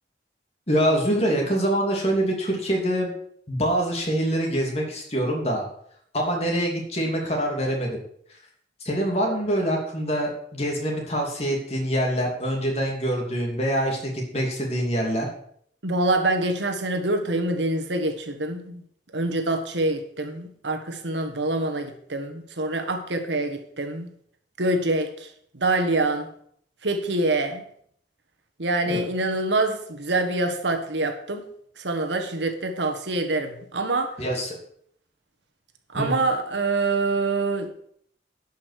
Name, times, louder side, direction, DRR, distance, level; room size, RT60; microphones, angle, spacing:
voice 1, 0.7-3.1 3.5-5.6 6.1-8.0 8.8-15.3 28.9-29.0 34.2-34.5 35.9-36.1, equal, 35° left, 0 dB, 2.7 m, -25 dB
voice 2, 15.8-18.8 19.1-24.1 24.6-25.3 25.5-26.3 26.8-27.6 28.6-31.5 31.8-34.1 35.9-37.7, right 2 dB, 85° right, 6 dB, 1.5 m, -25 dB
11.0 x 5.6 x 6.6 m, 0.65 s
head